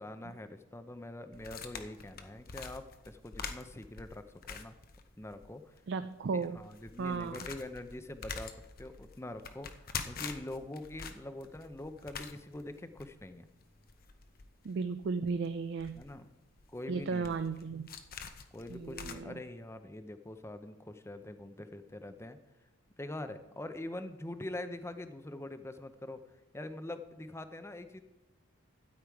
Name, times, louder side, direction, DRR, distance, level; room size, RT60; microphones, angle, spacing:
voice 1, 0.0-4.2 4.5-4.8 5.2-5.7 6.4-9.7 10.1-13.5 15.9-16.3 16.7-17.3 18.5-22.4 23.0-26.2 26.5-28.0, left 1 dB, 15° left, 10 dB, 0.6 m, -44 dB
sound 1, 1.3-5.5 5.8-5.9 6.4-19.1, left 6 dB, 45° left, 0.7 m, -46 dB
voice 2, 5.9-6.6 7.0-7.5 14.6-16.0 16.9-17.9 18.7-19.4, right 4 dB, 60° right, 10 dB, 0.4 m, -35 dB
12.5 x 8.7 x 4.8 m, 1.0 s
head